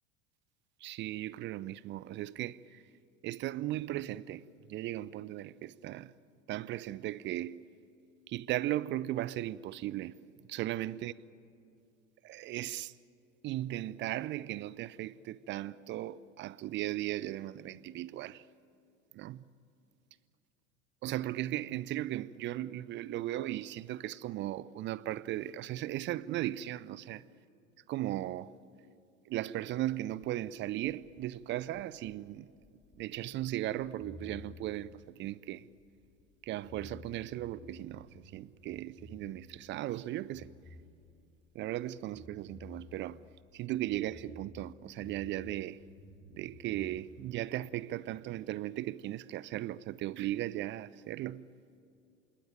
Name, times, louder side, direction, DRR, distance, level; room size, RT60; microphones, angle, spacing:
voice 1, 0.8-2.8 3.2-4.4 4.7-6.1 6.5-7.7 8.3-10.2 10.5-11.1 12.2-12.9 13.4-18.5 19.1-19.4 21.0-27.2 27.9-28.5 29.3-32.5 33.0-35.7 36.4-40.5 41.5-43.2 43.5-45.8 46.3-51.5, right 14 dB, 30° right, 0.5 m, -37 dB
sound 1, 30.2-36.3 36.6-39.7 39.9-41.8 42.1-45.5 45.8-47.0, left 3 dB, 20° left, 3.8 m, -54 dB
26.5 x 20.0 x 9.0 m
figure-of-eight pair, 80°, 40 cm